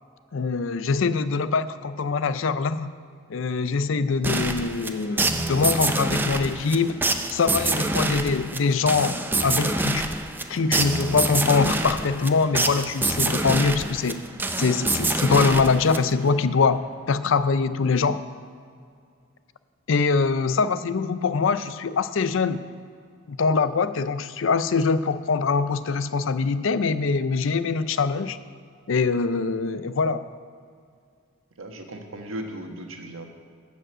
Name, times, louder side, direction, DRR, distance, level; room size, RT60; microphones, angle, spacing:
voice 1, 0.3-2.9 3.3-7.0 7.3-10.0 10.5-14.2 14.6-18.2 19.9-22.6 23.3-28.4 28.9-30.2, left 4 dB, 70° left, 13 dB, 0.5 m, -23 dB
sound 1, 4.2-16.4, right 2 dB, 10° right, 0.5 m, -26 dB
voice 2, 31.6-33.3, right 1 dB, 85° right, 3 dB, 1.3 m, -36 dB
12.5 x 5.2 x 7.8 m, 2.2 s
head